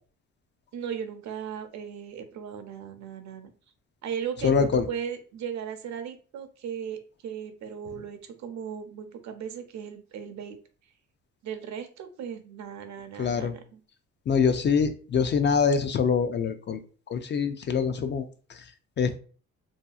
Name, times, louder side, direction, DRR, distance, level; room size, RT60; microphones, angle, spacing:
voice 1, 0.7-3.5 4.0-10.6 11.4-13.8, right 8 dB, 65° right, 7 dB, 0.6 m, -37 dB
voice 2, 4.4-4.9 13.2-13.5 14.3-16.8 17.1-18.2 19.0-19.2, left 6 dB, 40° left, 9 dB, 0.4 m, -24 dB
2.7 x 2.7 x 2.3 m, 0.39 s
cardioid pair, 90°, 30 cm